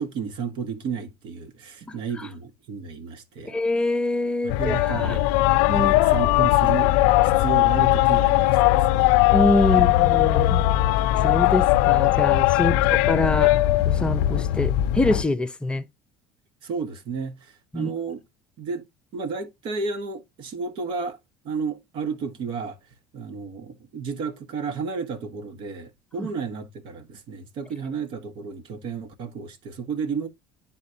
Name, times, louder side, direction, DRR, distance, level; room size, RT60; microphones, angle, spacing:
voice 1, 0.0-3.6 4.4-5.3 5.7-7.0 7.2-9.1 9.6-9.8 12.6-12.8 16.6-18.2 18.6-18.8 19.1-21.2 21.4-22.8 23.1-30.3, right 5 dB, 55° right, 1.3 m, -32 dB
voice 2, 3.4-5.2 5.7-5.9 9.3-10.7 11.2-13.6 13.9-15.9 17.7-17.9 26.2-26.3, left 2 dB, 10° left, 0.6 m, -25 dB
sound 1, 4.5-15.2, left 15 dB, 80° left, 0.5 m, -19 dB
11.0 x 4.2 x 2.7 m
cardioid pair, 140°, 10 cm